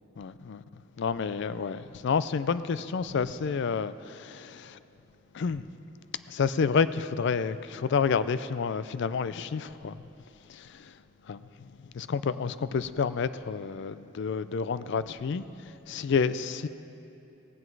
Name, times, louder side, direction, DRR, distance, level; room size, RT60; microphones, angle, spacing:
voice 1, 0.2-0.6 1.0-4.8 5.3-5.6 6.3-10.0 11.3-11.4 11.9-15.4 15.9-16.7, left 5 dB, 60° left, 14 dB, 0.4 m, -29 dB
17.5 x 7.8 x 4.7 m, 2.9 s
head